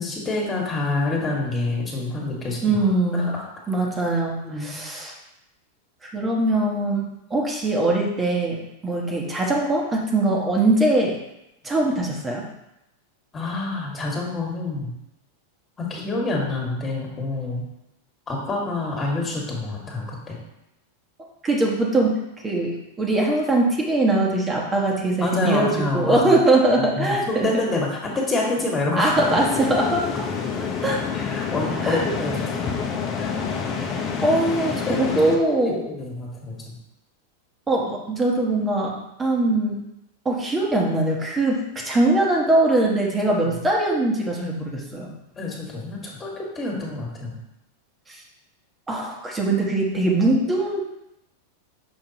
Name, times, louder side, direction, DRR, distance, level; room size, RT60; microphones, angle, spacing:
voice 1, 0.0-2.9 3.1-3.4 4.4-4.7 13.3-14.9 15.8-17.7 18.3-20.3 25.2-26.4 26.8-29.1 31.1-32.8 33.2-33.3 34.9-35.1 35.6-36.7 43.4-43.5 45.4-47.4, left 2 dB, 20° left, -2 dB, 1.9 m, -27 dB
voice 2, 2.6-3.3 3.7-5.1 6.0-11.2 11.6-12.5 21.4-22.2 22.4-27.6 28.9-30.1 30.8-31.1 31.8-32.0 34.2-35.9 37.7-39.8 40.2-45.1 48.1-48.2 48.9-50.8, right 2 dB, 20° right, -1 dB, 1.3 m, -22 dB
sound 1, 29.2-35.4, left 5 dB, 35° left, 1.0 m, -28 dB
6.2 x 5.1 x 3.0 m, 0.87 s
hypercardioid pair, 95°, 0 cm